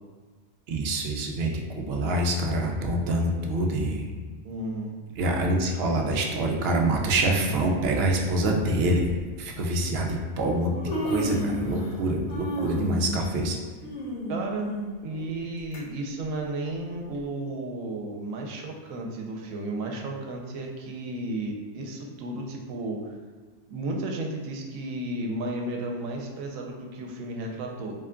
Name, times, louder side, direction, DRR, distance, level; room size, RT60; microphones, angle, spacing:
voice 1, 0.7-4.0 5.2-9.0 9.4-10.7 11.0-13.6, right 1 dB, 65° right, 1 dB, 0.7 m, -26 dB
voice 2, 4.4-5.0 14.3-14.7 15.0-23.1 23.7-27.9, right 2 dB, 90° right, 1 dB, 1.0 m, -33 dB
Human voice, 9.0-9.2 10.2-10.3 10.6-12.0 12.3-15.8 16.2-16.3 17.1-17.2, equal, 85° left, 1.2 m, -32 dB
3.7 x 3.6 x 2.2 m, 1.4 s
omnidirectional pair, 1.4 m